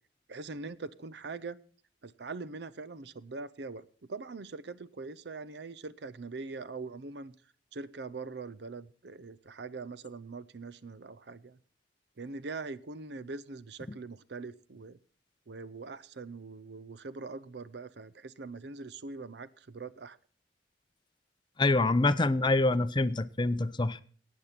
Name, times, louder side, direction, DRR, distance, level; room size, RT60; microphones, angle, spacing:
voice 1, 0.3-1.6 2.0-7.3 7.7-11.6 12.2-15.0 15.5-20.2, right 3 dB, 65° right, 0.6 m, -42 dB
voice 2, 21.6-24.0, left 2 dB, 25° left, 0.6 m, -26 dB
17.5 x 8.6 x 5.8 m
head